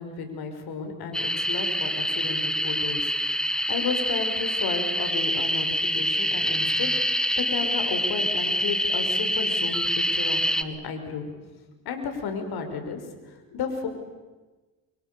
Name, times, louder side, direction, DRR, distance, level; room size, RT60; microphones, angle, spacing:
voice 1, 0.0-3.1 3.4-11.3 11.9-13.0 13.3-13.9, left 5 dB, 65° left, 6 dB, 5.5 m, -33 dB
sound 1, 1.1-10.6, equal, ahead, 1.5 m, -26 dB
28.0 x 25.0 x 6.9 m, 1.3 s
supercardioid pair, 75°, 40 cm